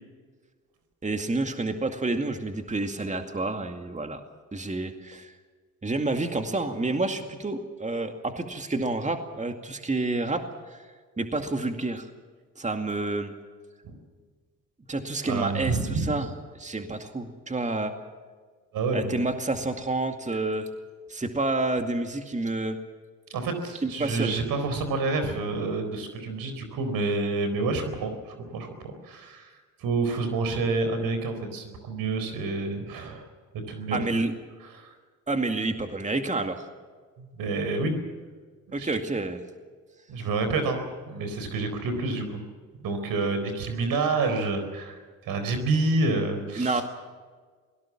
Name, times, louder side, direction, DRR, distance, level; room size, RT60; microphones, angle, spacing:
voice 1, 1.0-4.2 4.5-5.4 5.8-10.8 11.2-12.1 12.6-13.3 14.9-17.9 18.9-20.7 21.1-22.8 23.8-24.4 33.9-34.3 35.3-36.6 38.7-39.4 46.6-46.8, right 2 dB, 20° right, 6 dB, 2.2 m, -29 dB
voice 2, 15.3-16.2 18.7-19.2 23.3-29.5 29.8-33.3 33.7-34.1 34.6-34.9 37.2-38.0 38.8-38.9 40.1-42.4 42.8-46.8, right 3 dB, 80° right, 8 dB, 4.3 m, -28 dB
23.5 x 18.0 x 7.4 m, 1.5 s
cardioid pair, 75°, 34 cm